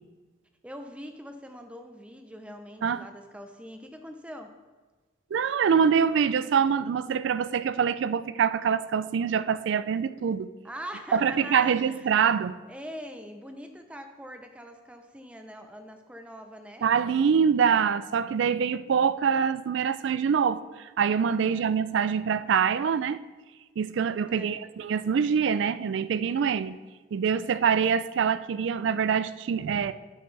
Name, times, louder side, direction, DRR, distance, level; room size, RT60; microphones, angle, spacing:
voice 1, 0.6-4.5 10.6-12.2 12.7-16.9 21.4-21.7 24.2-24.6, equal, 5° right, 5 dB, 0.5 m, -43 dB
voice 2, 5.3-10.5 11.1-12.6 16.8-23.2 23.8-26.8 27.1-29.9, right 7 dB, 70° right, 15 dB, 0.3 m, -25 dB
9.3 x 7.9 x 3.3 m, 1.3 s
head